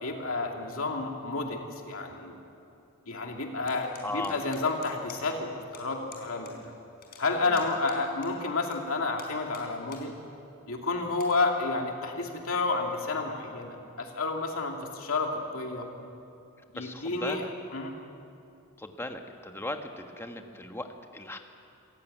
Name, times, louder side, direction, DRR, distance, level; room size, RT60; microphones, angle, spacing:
voice 1, 0.0-2.4 3.1-6.7 7.2-10.2 10.7-15.9 16.7-17.9, left 3 dB, 65° left, 1 dB, 2.7 m, -30 dB
sound 1, 3.7-5.4 5.7-5.8 6.1-6.5 6.8-8.8 9.2-10.1 10.5-10.6 11.1-11.3, left 8 dB, 45° left, 4.0 m, -49 dB
voice 2, 4.0-4.4 7.5-7.7 16.7-17.5 18.8-21.4, left 1 dB, 10° left, 5 dB, 1.4 m, -37 dB
26.0 x 15.5 x 9.2 m, 2.7 s
head